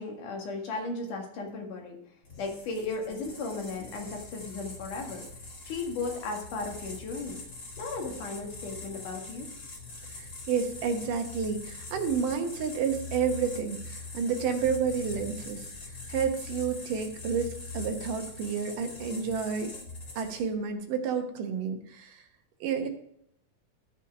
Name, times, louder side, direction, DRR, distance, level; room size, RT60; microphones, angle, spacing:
voice 1, 0.0-2.0 2.4-5.2 5.6-7.4 7.8-9.5, left 3 dB, 65° left, 1 dB, 3.3 m, -35 dB
sound 1, 2.2-20.6, left 3 dB, 35° left, 2.0 m, -43 dB
voice 2, 10.0-19.7 20.2-22.2 22.6-22.9, right 6 dB, 75° right, 5 dB, 2.5 m, -30 dB
13.5 x 5.7 x 4.9 m, 0.71 s
omnidirectional pair, 4.0 m